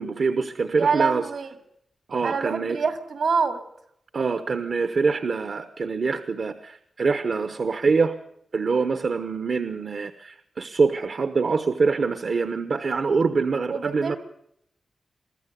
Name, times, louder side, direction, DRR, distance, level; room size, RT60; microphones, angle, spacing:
voice 1, 0.0-1.3 2.1-2.8 4.1-8.1 8.5-14.2, right 4 dB, 60° right, 10 dB, 1.0 m, -25 dB
voice 2, 0.8-1.5 2.2-3.6 13.7-14.2, right 5 dB, 75° right, 8 dB, 2.5 m, -25 dB
24.0 x 14.5 x 8.2 m, 0.74 s
wide cardioid pair, 110°, 0 cm